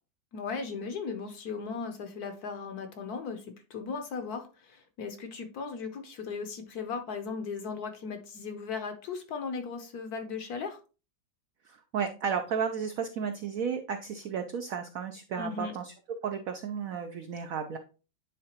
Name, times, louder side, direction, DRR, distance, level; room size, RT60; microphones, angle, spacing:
voice 1, 0.3-10.8 15.4-15.7, left 5 dB, 65° left, 7 dB, 1.0 m, -37 dB
voice 2, 11.7-15.9 16.2-17.8, right 6 dB, 90° right, 6 dB, 0.7 m, -33 dB
9.6 x 3.6 x 2.9 m, 0.34 s
omnidirectional pair, 2.1 m